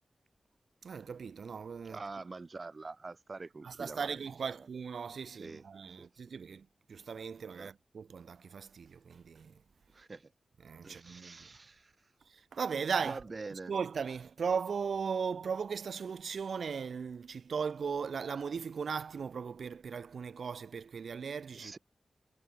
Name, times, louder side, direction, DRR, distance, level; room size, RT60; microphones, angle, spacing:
voice 1, 0.8-2.0 3.6-9.5 10.6-11.5 12.5-13.2 13.7-21.8, right 6 dB, 80° right, 1.9 m, -37 dB
voice 2, 1.8-4.7 5.3-5.6 6.0-6.1 7.6-7.7 9.9-10.3 10.8-11.9 13.0-13.7 21.6-21.8, right 3 dB, 45° right, 2.2 m, -45 dB
cardioid pair, 60°, 0 cm